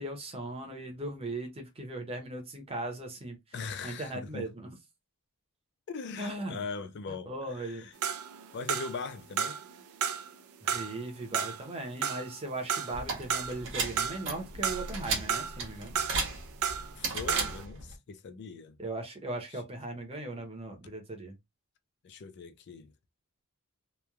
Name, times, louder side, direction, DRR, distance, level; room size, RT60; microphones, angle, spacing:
voice 1, 0.0-3.4 3.8-4.7 6.2-6.6 7.1-7.9 10.6-16.0 18.8-21.3, right 2 dB, 25° right, 0.7 m, -38 dB
voice 2, 3.5-4.5 5.9-7.9 8.5-9.6 17.0-18.8 19.5-19.6 22.0-22.9, left 4 dB, 50° left, 0.4 m, -40 dB
sound 1, 8.0-9.1 9.4-10.3 10.7-13.6 14.0-15.0 15.3-16.9 17.2-17.6, right 7 dB, 80° right, 0.4 m, -33 dB
sound 2, 12.9-18.0, right 3 dB, 60° right, 0.9 m, -35 dB
3.0 x 2.1 x 2.3 m
head